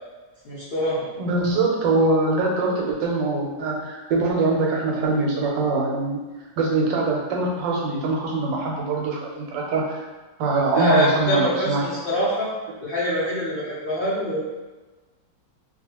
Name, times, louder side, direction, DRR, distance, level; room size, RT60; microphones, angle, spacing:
voice 1, 0.4-1.1 10.7-12.5 12.8-14.4, equal, 70° left, -10 dB, 0.5 m, -24 dB
voice 2, 1.2-6.2 6.6-10.0 10.4-11.8, right 3 dB, 80° right, -1 dB, 1.3 m, -23 dB
2.7 x 2.4 x 2.9 m, 1.2 s
omnidirectional pair, 2.0 m